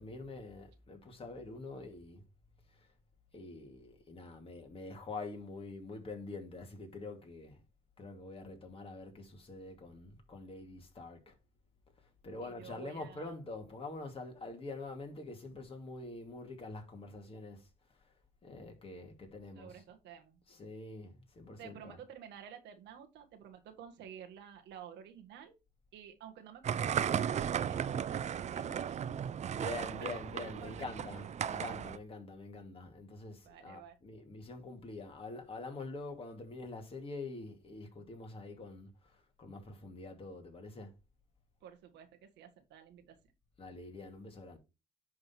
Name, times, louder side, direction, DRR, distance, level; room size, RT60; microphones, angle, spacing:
voice 1, 0.0-2.2 3.3-7.6 8.0-11.3 12.2-17.6 18.4-19.8 20.5-22.0 29.5-39.1 39.4-40.9 43.6-44.6, left 3 dB, 30° left, 2.5 m, -45 dB
voice 2, 12.4-13.3 19.5-20.4 21.6-25.5 25.9-29.2 30.0-30.2 30.5-31.1 33.4-34.0 41.6-43.2, right 8 dB, 90° right, 1.7 m, -52 dB
sound 1, 26.6-32.0, right 8 dB, 40° right, 0.5 m, -35 dB
10.5 x 3.9 x 4.4 m
cardioid pair, 115°, 18 cm